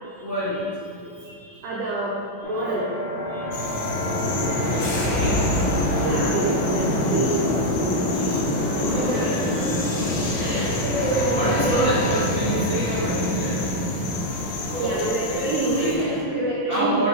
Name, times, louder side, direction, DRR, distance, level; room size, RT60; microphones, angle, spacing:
voice 1, 0.0-1.8 3.3-4.1 4.7-5.5 8.1-10.6 11.4-13.7 14.7-15.9 16.7-17.1, right 1 dB, 50° left, -11 dB, 1.0 m, -29 dB
voice 2, 1.6-2.2 2.4-2.9 6.0-8.3 8.7-9.5 10.3-12.1 14.8-17.0, right 2 dB, 80° right, -5 dB, 1.5 m, -27 dB
sound 1, 2.4-16.2, left 1 dB, 65° left, 2.3 m, -25 dB
sound 2, 3.5-16.0, left 5 dB, 85° left, 1.5 m, -35 dB
7.4 x 4.3 x 3.4 m, 2.5 s
omnidirectional pair, 3.9 m